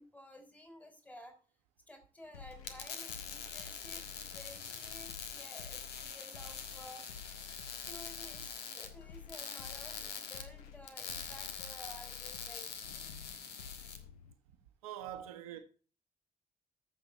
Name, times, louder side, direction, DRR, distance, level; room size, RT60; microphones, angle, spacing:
voice 1, 0.0-1.4 1.9-7.1 7.9-12.8, left 1 dB, 10° left, 3.4 m, -53 dB
sound 1, 2.3-14.3, left 7 dB, 85° left, 0.6 m, -52 dB
sound 2, 2.5-14.0, left 6 dB, 65° left, 1.5 m, -44 dB
voice 2, 14.8-15.6, right 11 dB, 85° right, 1.2 m, -43 dB
14.5 x 5.9 x 4.3 m
hypercardioid pair, 40°, 18 cm